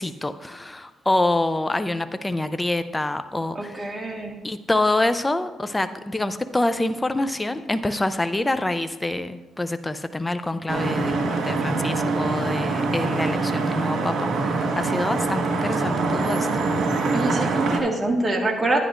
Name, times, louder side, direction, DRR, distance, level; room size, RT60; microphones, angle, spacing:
voice 1, 0.0-3.9 4.4-16.6, left 2 dB, 15° left, 11 dB, 0.5 m, -26 dB
voice 2, 3.5-4.4 17.1-18.8, right 2 dB, 25° right, 1 dB, 1.6 m, -25 dB
Vehicle horn car horn honking / Traffic noise roadway noise, 10.7-17.8, right 3 dB, 70° right, 1.6 m, -24 dB
11.5 x 9.8 x 2.5 m, 1.1 s
cardioid pair, 90°, 0 cm